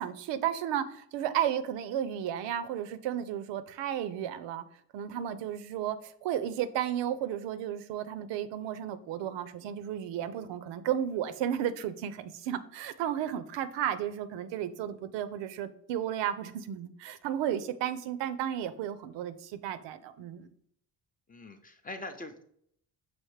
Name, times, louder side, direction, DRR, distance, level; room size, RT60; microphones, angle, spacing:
voice 1, 0.0-4.6 4.9-20.5, right 10 dB, 75° right, 12 dB, 0.5 m, -33 dB
voice 2, 21.3-22.4, left 2 dB, 20° left, 7 dB, 0.5 m, -42 dB
5.7 x 2.6 x 3.2 m, 0.66 s
supercardioid pair, 65°, 44 cm